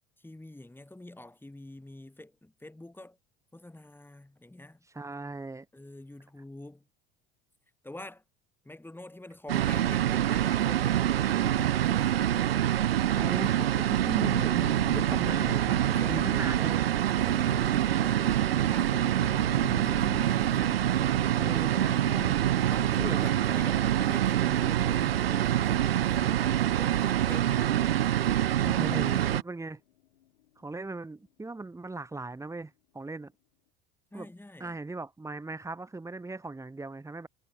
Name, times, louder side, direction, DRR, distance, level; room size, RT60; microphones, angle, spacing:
voice 1, 0.2-3.2 3.5-4.8 5.7-6.9 7.8-8.2 8.6-12.7 15.9-16.3 17.2-20.6 21.0-21.8 22.7-27.7 34.1-34.8, left 1 dB, 5° left, 6.2 m, -46 dB
voice 2, 4.9-5.7 13.1-16.9 21.4-22.6 23.0-23.6 28.6-29.8 30.6-33.3 34.1-34.3 34.6-37.3, right 3 dB, 10° right, 1.4 m, -38 dB
sound 1, 9.5-29.4, right 12 dB, 90° right, 0.8 m, -26 dB
sound 2, 14.6-31.0, left 14 dB, 80° left, 4.1 m, -47 dB
hypercardioid pair, 80°, 29 cm